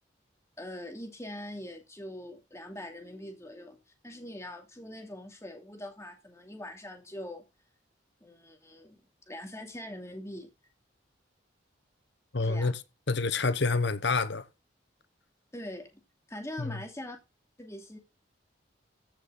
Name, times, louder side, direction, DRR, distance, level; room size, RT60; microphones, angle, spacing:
voice 1, 0.6-3.8 4.0-7.4 8.2-9.0 9.3-10.5 12.4-12.7 15.5-16.0 16.3-17.2 17.6-18.0, left 1 dB, 15° left, 2.8 m, -42 dB
voice 2, 12.3-12.8 13.1-14.4 16.6-16.8, left 4 dB, 65° left, 1.0 m, -28 dB
14.5 x 6.5 x 4.1 m
head